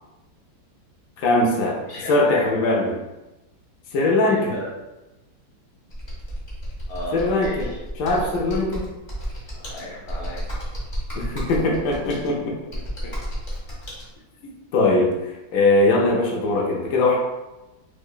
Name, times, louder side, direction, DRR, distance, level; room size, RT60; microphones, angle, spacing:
voice 1, 1.2-1.8 2.1-2.9 3.9-4.5 7.1-7.7 8.0-8.9 11.1-12.6 14.7-17.2, left 2 dB, 80° left, -2 dB, 0.7 m, -21 dB
voice 2, 1.9-2.5 4.3-4.7 6.9-7.8 9.5-10.5 12.7-13.2, left 1 dB, 60° left, -4 dB, 1.3 m, -34 dB
Computer keyboard, 5.9-14.0, equal, 40° left, 0.6 m, -32 dB
4.6 x 2.2 x 2.3 m, 1.0 s
omnidirectional pair, 2.1 m